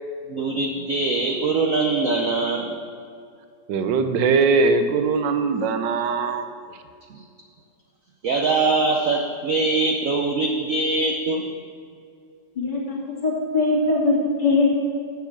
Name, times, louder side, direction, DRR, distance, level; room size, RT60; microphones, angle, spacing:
voice 1, 0.3-2.7 7.1-7.2 8.2-11.4, right 3 dB, 60° right, 2 dB, 1.0 m, -22 dB
voice 2, 3.7-6.4, right 4 dB, 80° right, 9 dB, 1.4 m, -21 dB
voice 3, 12.6-13.0 13.2-14.8, left 3 dB, 25° left, -5 dB, 2.4 m, -21 dB
7.8 x 6.9 x 7.2 m, 2.3 s
omnidirectional pair, 2.0 m